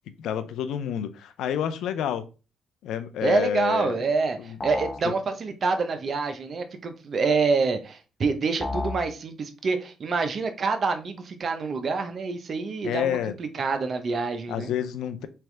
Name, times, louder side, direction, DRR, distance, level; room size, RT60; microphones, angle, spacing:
voice 1, 0.2-2.3 2.8-4.0 4.4-4.6 5.0-5.1 12.8-13.3 14.5-15.3, left 9 dB, 80° left, 0.4 m, -29 dB
voice 2, 3.2-14.7, right 4 dB, 50° right, 0.7 m, -27 dB
sound 1, 4.6-5.1 8.6-9.1, left 3 dB, 35° left, 1.1 m, -31 dB
3.5 x 3.4 x 3.2 m
cardioid pair, 90°, 0 cm